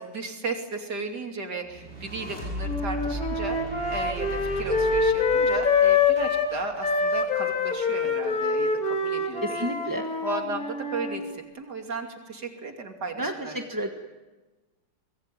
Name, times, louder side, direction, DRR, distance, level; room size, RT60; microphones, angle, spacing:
voice 1, 0.1-3.6 3.9-9.7 10.2-13.6, right 3 dB, 60° right, 3 dB, 3.4 m, -35 dB
sound 1, 1.7-7.0, left 1 dB, 30° right, 5.4 m, -37 dB
sound 2, 2.7-6.5 6.8-11.2, left 4 dB, 50° left, 3.2 m, -25 dB
voice 2, 9.4-10.1 13.2-13.9, equal, 10° right, 3 dB, 1.2 m, -31 dB
25.0 x 21.5 x 9.4 m, 1.2 s
omnidirectional pair, 2.0 m